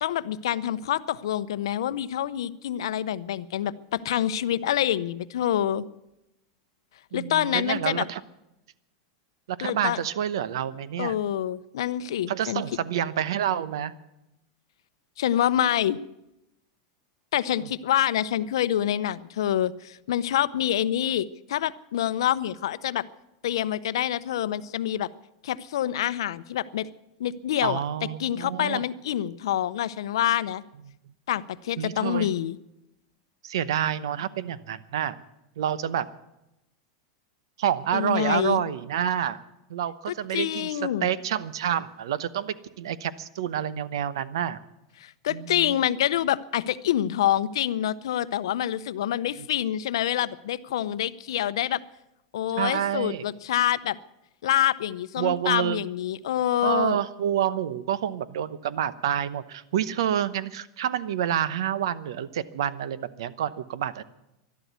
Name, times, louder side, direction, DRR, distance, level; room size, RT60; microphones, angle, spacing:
voice 1, 0.0-5.8 7.1-8.1 9.6-10.0 11.0-12.6 15.2-16.0 17.3-23.0 23.4-25.1 25.4-26.9 27.2-27.8 28.2-30.6 31.3-32.6 37.9-38.6 40.3-41.1 45.0-51.8 52.3-54.0 54.4-57.0, left 11 dB, 90° left, 16 dB, 0.6 m, -26 dB
voice 2, 7.1-8.2 9.5-11.2 12.3-13.9 27.6-28.8 31.8-32.3 33.4-35.2 35.6-36.1 37.6-39.4 39.7-44.6 45.3-45.7 52.6-53.3 55.2-55.8 56.6-64.0, right 10 dB, 75° right, 16 dB, 0.8 m, -28 dB
12.5 x 12.0 x 9.3 m, 0.92 s
supercardioid pair, 175°, 3 cm